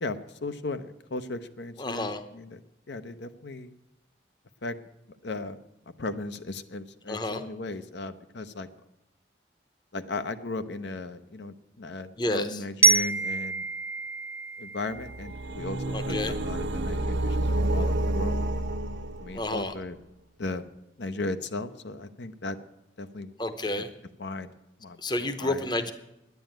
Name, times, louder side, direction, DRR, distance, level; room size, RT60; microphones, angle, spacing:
voice 1, 0.0-2.6 2.9-3.7 4.6-4.8 5.2-5.6 6.0-8.7 9.9-13.7 14.6-18.4 19.2-20.0 20.4-20.7 21.0-22.6 23.0-23.3 24.2-24.5 24.8-25.7, left 2 dB, 75° left, 10 dB, 0.7 m, -36 dB
voice 2, 1.8-2.2 7.1-7.4 12.2-12.6 15.9-16.3 19.3-19.7 23.4-23.9 25.0-25.9, left 2 dB, 25° left, 10 dB, 0.7 m, -30 dB
Glockenspiel, 12.8-15.7, right 4 dB, 10° right, 0.4 m, -26 dB
sound 1, 14.9-19.6, right 1 dB, 90° right, 0.8 m, -29 dB
10.5 x 9.3 x 9.0 m, 0.90 s
head